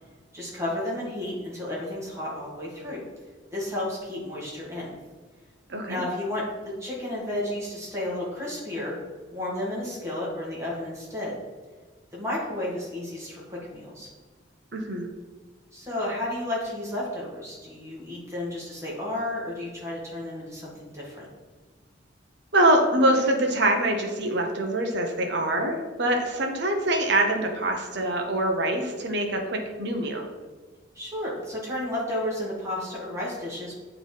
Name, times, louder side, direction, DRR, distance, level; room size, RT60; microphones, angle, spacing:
voice 1, 0.3-3.1 3.5-5.0 5.9-9.0 9.3-11.4 12.1-14.1 15.7-21.3 30.9-33.7, left 1 dB, 15° right, -6 dB, 1.9 m, -32 dB
voice 2, 5.7-6.0 14.7-15.1 22.5-30.3, right 1 dB, 60° right, 3 dB, 1.0 m, -24 dB
8.3 x 3.4 x 4.0 m, 1.4 s
head